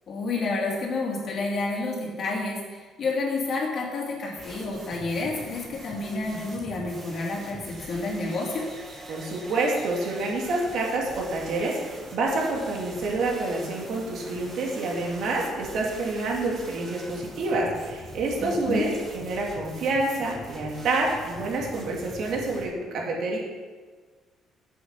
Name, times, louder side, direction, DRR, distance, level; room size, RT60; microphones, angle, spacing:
voice 1, 0.1-8.7 18.4-18.9, left 3 dB, 45° left, -3 dB, 2.8 m, -29 dB
sound 1, 4.4-22.7, right 1 dB, 45° right, 3.0 m, -43 dB
voice 2, 9.1-23.4, right 2 dB, 65° right, -1 dB, 2.5 m, -28 dB
7.8 x 7.3 x 6.0 m, 1.4 s
cardioid pair, 130°, 0 cm